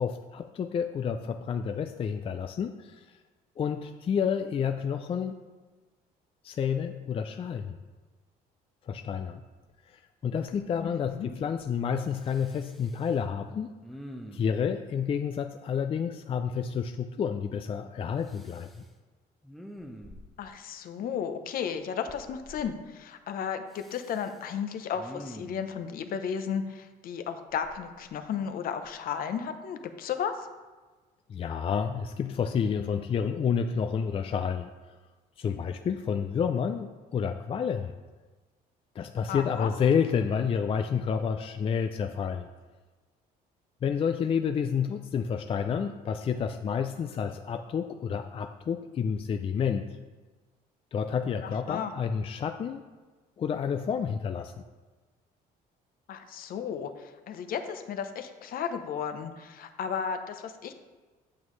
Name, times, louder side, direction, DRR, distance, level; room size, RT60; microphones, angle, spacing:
voice 1, 0.0-3.0 3.6-5.3 6.4-7.8 8.9-9.4 10.2-13.7 14.3-18.7 31.3-34.7 35.4-37.9 39.0-42.5 43.8-49.9 50.9-52.8 53.4-54.5, left 7 dB, 35° left, 6 dB, 0.4 m, -29 dB
Respiratory sounds, 9.7-9.8 10.2-10.8 11.0-11.8 12.1-13.1 13.8-14.6 18.2-18.9 19.4-20.5 22.1-22.7 23.7-24.4 24.9-25.7 27.5-28.4 28.8-29.0, equal, ahead, 0.7 m, -47 dB
voice 2, 10.8-11.3 20.4-30.5 39.3-39.7 51.4-51.9 56.1-60.7, left 7 dB, 60° left, 8 dB, 0.8 m, -34 dB
8.6 x 7.1 x 3.2 m, 1.3 s
cardioid pair, 110°, 17 cm